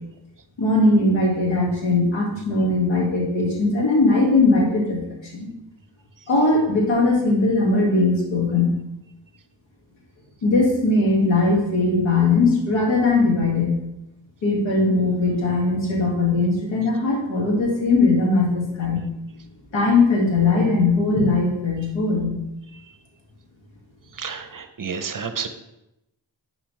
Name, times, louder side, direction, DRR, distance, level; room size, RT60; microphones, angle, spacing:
voice 1, 0.6-5.0 5.3-5.5 6.3-8.7 10.4-13.8 14.4-19.0 19.7-22.4, left 3 dB, 85° left, -2 dB, 1.9 m, -19 dB
voice 2, 24.2-25.5, right 6 dB, 45° right, 9 dB, 0.6 m, -30 dB
9.7 x 3.9 x 3.2 m, 0.89 s
wide cardioid pair, 90°, 45 cm